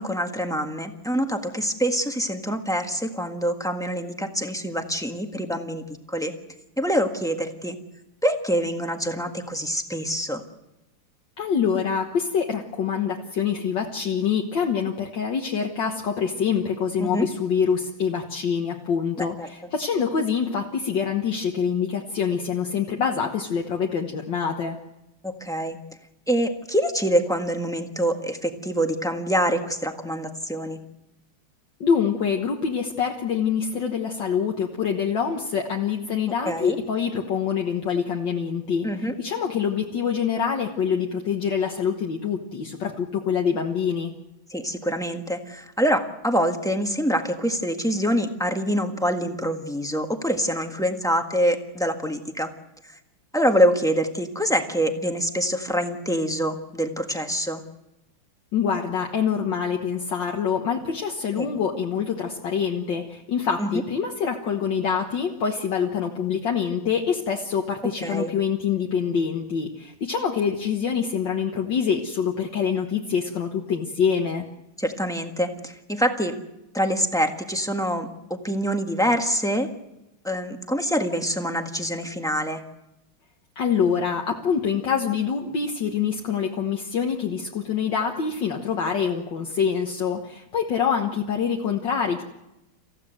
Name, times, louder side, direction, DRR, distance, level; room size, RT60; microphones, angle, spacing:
voice 1, 0.0-6.3 6.8-7.8 8.2-10.4 17.0-17.3 19.2-19.7 25.2-25.8 26.3-30.8 36.4-36.8 38.8-39.1 44.5-52.5 52.9-53.0 53.3-57.6 61.4-61.5 63.6-63.8 68.0-68.3 74.8-76.3 76.7-79.7 80.2-82.6, equal, ahead, 5 dB, 1.3 m, -25 dB
voice 2, 11.4-24.8 31.8-44.1 58.5-74.4 83.6-92.2, left 7 dB, 60° left, 1 dB, 2.0 m, -25 dB
27.0 x 15.5 x 7.8 m, 0.94 s
omnidirectional pair, 2.3 m